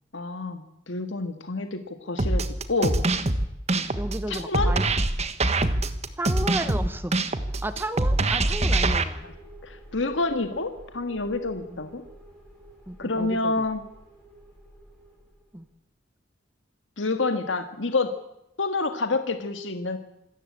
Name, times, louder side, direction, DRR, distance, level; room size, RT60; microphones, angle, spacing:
voice 1, 0.1-2.4 2.7-3.0 4.3-4.7 9.2-9.3 9.6-12.0 13.0-13.8 17.0-18.1 18.6-20.0, left 3 dB, 80° left, 8 dB, 1.7 m, -28 dB
sound 1, 2.2-9.0, right 2 dB, 35° right, 1.4 m, -24 dB
voice 2, 3.7-4.9 6.2-7.2 7.6-9.3 11.7-11.8 12.9-13.6 15.5-15.6, right 1 dB, 10° right, 12 dB, 0.8 m, -33 dB
sound 2, 7.8-15.6, right 1 dB, 10° left, 7.9 m, -50 dB
26.0 x 14.0 x 8.7 m, 0.87 s
head